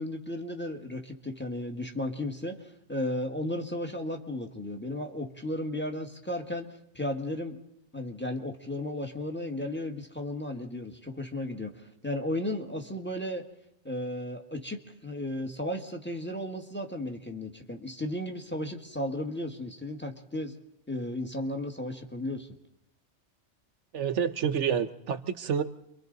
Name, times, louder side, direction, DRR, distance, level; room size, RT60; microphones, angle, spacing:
voice 1, 0.0-6.7 6.9-7.6 7.9-11.7 12.0-13.4 13.8-20.5 20.9-22.5, left 1 dB, 10° left, 3 dB, 1.6 m, -34 dB
voice 2, 23.9-25.6, right 7 dB, 75° right, 11 dB, 1.2 m, -28 dB
28.5 x 24.0 x 4.0 m, 0.86 s
omnidirectional pair, 1.2 m